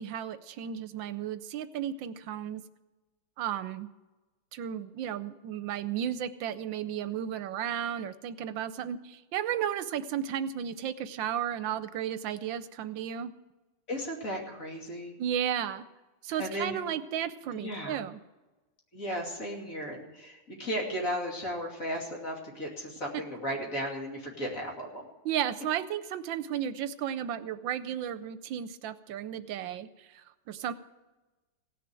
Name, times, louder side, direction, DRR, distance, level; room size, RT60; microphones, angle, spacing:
voice 1, 0.0-2.6 3.4-3.9 4.5-13.3 15.2-15.9 16.2-18.2 25.2-30.7, right 9 dB, 80° right, 12 dB, 1.4 m, -34 dB
voice 2, 13.9-15.2 16.4-16.8 17.5-18.1 18.9-25.1, equal, 45° left, -1 dB, 3.0 m, -35 dB
17.0 x 6.9 x 8.9 m, 1.1 s
omnidirectional pair, 2.1 m